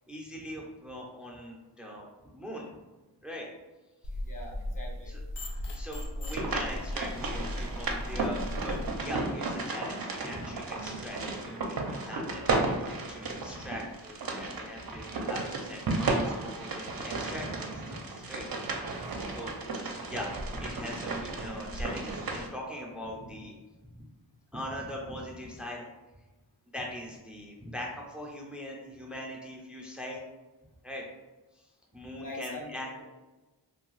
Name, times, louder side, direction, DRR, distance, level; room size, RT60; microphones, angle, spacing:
voice 1, 0.1-2.1 2.3-2.8 3.2-3.5 5.1-5.2 5.7-18.5 18.8-19.5 20.0-23.5 23.8-24.0 24.5-25.8 26.7-30.2 30.8-31.1 31.5-31.6 31.9-32.9, left 1 dB, ahead, -1 dB, 0.5 m, -41 dB
sound 1, 4.0-8.9, left 1 dB, 85° left, 0.6 m, -37 dB
voice 2, 4.2-5.2 19.1-19.3 32.2-33.0, left 1 dB, 50° left, -1 dB, 0.7 m, -44 dB
sound 2, 6.3-22.5, right 3 dB, 55° right, 0.5 m, -34 dB
2.6 x 2.3 x 3.1 m, 1.1 s
wide cardioid pair, 55°, 42 cm